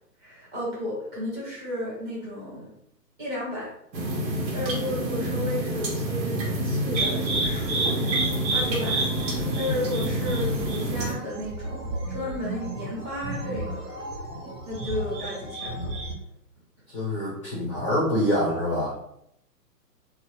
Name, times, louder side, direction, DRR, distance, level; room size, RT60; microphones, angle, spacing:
voice 1, 0.2-2.7 3.2-3.7 4.5-8.1 8.5-14.0 14.6-15.9, left 1 dB, 15° right, -7 dB, 0.9 m, -33 dB
sound 1, 3.9-11.1, equal, 90° right, 0.9 m, -28 dB
sound 2, 6.9-16.1, right 2 dB, 40° right, 1.1 m, -31 dB
voice 2, 16.9-18.9, equal, 20° left, -7 dB, 0.4 m, -25 dB
2.9 x 2.1 x 3.1 m, 0.75 s
hypercardioid pair, 145°, 49 cm